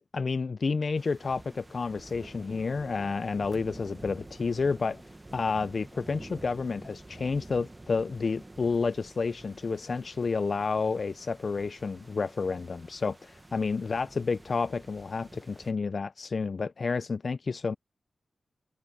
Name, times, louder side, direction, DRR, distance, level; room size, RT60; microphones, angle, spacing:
voice 1, 0.0-5.0 5.3-17.8, left 4 dB, 45° left, 0.3 m, -30 dB
sound 1, 1.0-15.7, right 2 dB, 20° right, 1.0 m, -49 dB
wide cardioid pair, 120°, 0 cm